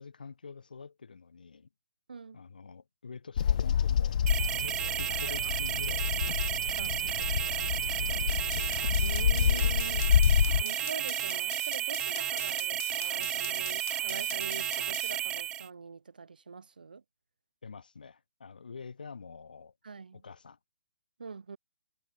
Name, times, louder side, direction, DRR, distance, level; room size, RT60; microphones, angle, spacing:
voice 1, 0.0-1.7 2.3-6.2 7.0-10.3 17.6-19.7 20.1-20.6, left 5 dB, 75° left, 6.8 m, -47 dB
voice 2, 2.1-2.4 6.8-7.2 9.0-10.2 10.6-17.0 19.8-20.2 21.2-21.6, right 5 dB, 75° right, 7.6 m, -44 dB
Bird vocalization bird call bird song, 3.4-10.6, left 9 dB, 55° left, 0.5 m, -28 dB
sound 1, 4.3-15.7, right 11 dB, 15° right, 0.8 m, -32 dB
sound 2, 8.3-15.2, left 21 dB, 25° left, 0.9 m, -45 dB
figure-of-eight pair, 135°, 5 cm